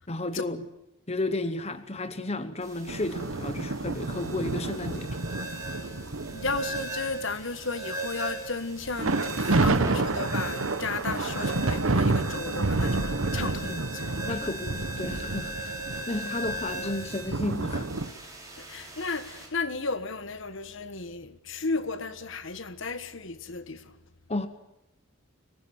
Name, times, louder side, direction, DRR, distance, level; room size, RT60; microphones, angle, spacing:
voice 1, 0.1-0.6 1.1-5.2 13.4-13.5 14.2-17.9 24.3-24.5, left 2 dB, 30° left, 1.2 m, -33 dB
sound 1, 2.6-19.5, right 1 dB, 15° right, 6.3 m, -39 dB
sound 2, 2.9-7.5 7.9-8.2 8.9-18.1, right 3 dB, 70° right, 1.1 m, -29 dB
voice 2, 5.8-14.2 18.6-23.9, left 3 dB, 60° left, 1.4 m, -34 dB
24.5 x 19.5 x 9.5 m
head